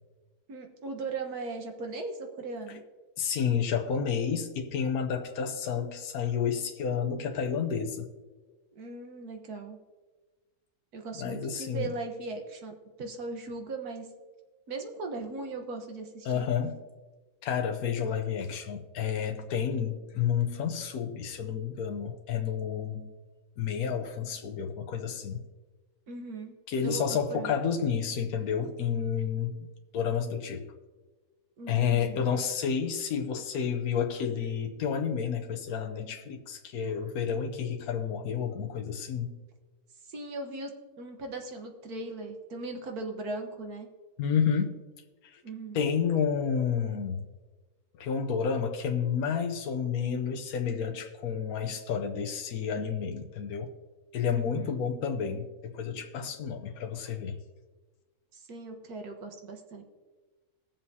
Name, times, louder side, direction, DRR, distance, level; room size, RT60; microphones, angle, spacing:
voice 1, 0.5-2.8 8.8-9.8 10.9-14.1 14.7-16.4 26.1-26.5 26.8-27.5 31.6-32.2 40.1-40.7 41.0-43.9 45.4-45.8 54.3-54.7 58.3-59.8, right 3 dB, 85° right, 3 dB, 1.7 m, -38 dB
voice 2, 3.2-8.1 11.2-11.9 16.2-16.8 17.4-23.1 23.6-25.4 26.7-29.6 29.9-30.7 31.7-39.3 44.2-44.8 45.3-45.4 45.7-47.3 48.0-53.7 54.1-57.4, left 7 dB, 75° left, 4 dB, 1.3 m, -30 dB
20.0 x 7.2 x 2.8 m, 1.3 s
omnidirectional pair, 1.6 m